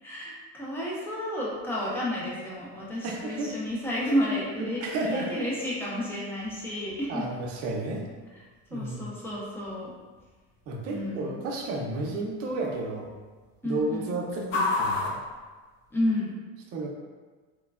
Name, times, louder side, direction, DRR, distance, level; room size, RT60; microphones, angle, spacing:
voice 1, 0.0-7.3 8.7-9.9 10.9-11.4 13.6-14.2 15.9-16.3, left 1 dB, 5° left, -6 dB, 0.4 m, -31 dB
sound 1, 1.5-16.3, left 3 dB, 70° left, 0.6 m, -39 dB
voice 2, 3.0-3.5 4.8-5.3 7.1-8.0 8.7-9.1 10.7-13.1 13.6-15.2 16.7-16.9, right 2 dB, 50° right, -1 dB, 0.5 m, -32 dB
3.1 x 2.1 x 2.3 m, 1.3 s
cardioid pair, 155°, 31 cm